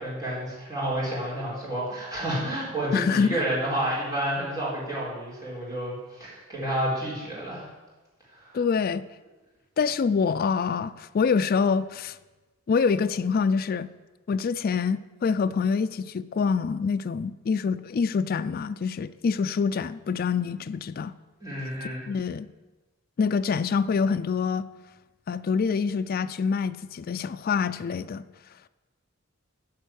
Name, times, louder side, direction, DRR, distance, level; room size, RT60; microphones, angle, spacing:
voice 1, 0.0-7.7 8.3-8.5 21.4-22.1, right 1 dB, 15° right, 4.2 m, -30 dB
voice 2, 2.9-3.4 8.5-9.0 9.8-12.2 12.7-13.9 14.3-21.1 22.1-22.5 23.2-24.6 25.3-28.3, left 5 dB, 45° left, 0.3 m, -26 dB
10.5 x 5.5 x 8.2 m
head